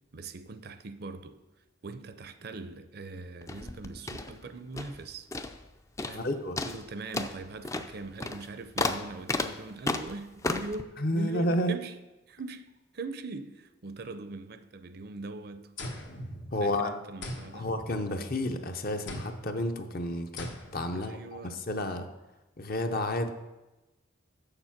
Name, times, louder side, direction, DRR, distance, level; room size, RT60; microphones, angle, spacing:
voice 1, 0.1-1.4 1.8-5.3 6.0-6.3 6.6-12.0 12.3-15.7 16.6-17.7 20.9-21.6, right 3 dB, 55° right, 0.6 m, -41 dB
sound 1, 3.4-5.0 5.3-5.7 6.0-6.3 6.6-10.8, left 2 dB, 15° left, 0.4 m, -34 dB
voice 2, 6.1-6.6 11.0-11.8 16.5-16.9 17.5-22.1 22.6-23.3, left 1 dB, 50° left, 0.7 m, -31 dB
sound 2, 15.8-16.8 17.2-18.5 19.1-19.6 20.4-21.0, left 1 dB, 75° left, 1.2 m, -41 dB
7.5 x 6.8 x 5.8 m
head